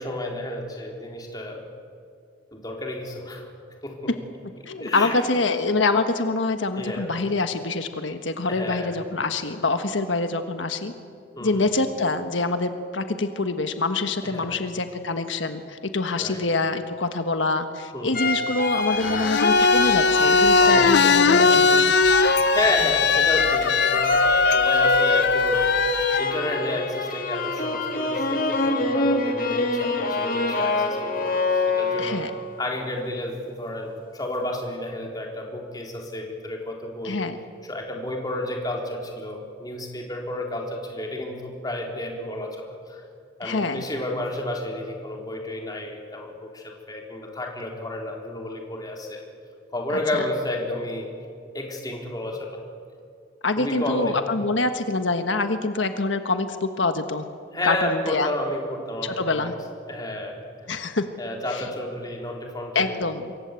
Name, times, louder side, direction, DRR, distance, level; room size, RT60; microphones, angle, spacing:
voice 1, 0.0-1.6 2.5-3.4 3.8-4.1 4.8-5.2 6.8-7.1 8.5-8.9 11.4-11.6 14.2-14.6 16.2-16.4 17.9-18.2 20.6-21.6 22.5-24.2 24.5-25.7 26.2-32.2 32.6-37.2 37.6-43.0 43.4-49.2 49.7-51.1 51.5-52.6 53.6-54.2 57.5-59.5 59.9-60.4 61.2-63.0, left 1 dB, 20° left, 0 dB, 3.9 m, -31 dB
voice 2, 4.7-10.9 11.4-21.9 32.0-32.3 37.0-37.4 43.4-43.8 50.1-50.2 53.4-57.3 57.6-58.3 59.0-59.5 60.7-61.0 61.5-61.6 62.7-63.3, left 3 dB, 85° left, 8 dB, 1.4 m, -25 dB
sound 1, 18.1-21.6 21.9-32.5, left 3 dB, 45° left, 2.7 m, -25 dB
sound 2, 18.9-26.2, left 4 dB, 65° left, 0.7 m, -19 dB
26.5 x 23.0 x 8.3 m, 2.3 s
head